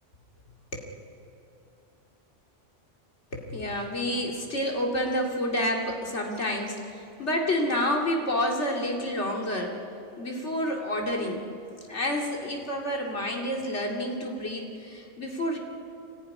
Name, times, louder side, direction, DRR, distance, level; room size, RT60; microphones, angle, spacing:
voice 1, 3.3-9.7 10.2-11.4 11.9-15.6, left 1 dB, 70° left, 0 dB, 2.8 m, -29 dB
24.0 x 15.5 x 9.6 m, 2.7 s
omnidirectional pair, 1.2 m